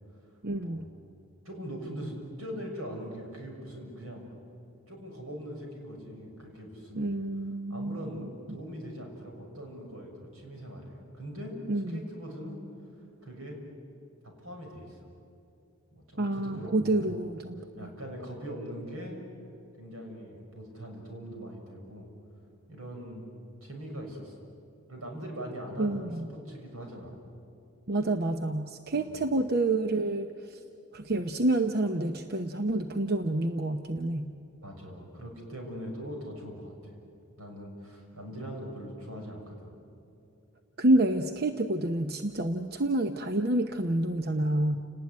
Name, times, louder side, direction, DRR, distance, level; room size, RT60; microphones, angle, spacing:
voice 1, 0.4-0.9 6.9-8.3 11.7-12.0 16.2-17.9 25.8-26.3 27.9-30.6 30.9-34.3 40.8-44.8, right 1 dB, 45° right, 7 dB, 0.9 m, -28 dB
voice 2, 1.5-4.3 4.9-7.2 7.7-11.6 11.9-12.6 13.2-13.6 14.2-15.1 15.9-17.2 17.8-19.2 19.8-22.1 22.7-23.3 23.6-24.4 24.9-27.2 28.9-29.1 34.6-37.0 37.4-39.8, equal, 85° right, 2 dB, 6.8 m, -41 dB
30.0 x 19.0 x 9.6 m, 2.7 s
head